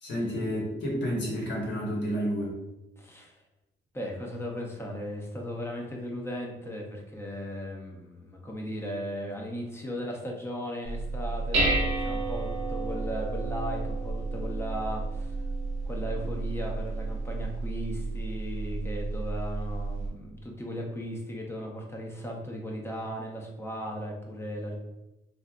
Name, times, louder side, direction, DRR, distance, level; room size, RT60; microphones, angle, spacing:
voice 1, 0.0-2.6, equal, 65° left, -3 dB, 1.1 m, -30 dB
voice 2, 3.0-3.4 3.9-15.4 15.8-24.8, equal, 10° left, -1 dB, 0.7 m, -37 dB
Dishes pots and pans, 10.8-20.1, right 3 dB, 85° right, 0.9 m, -31 dB
3.3 x 2.5 x 2.3 m, 0.98 s
cardioid pair, 90°, 20 cm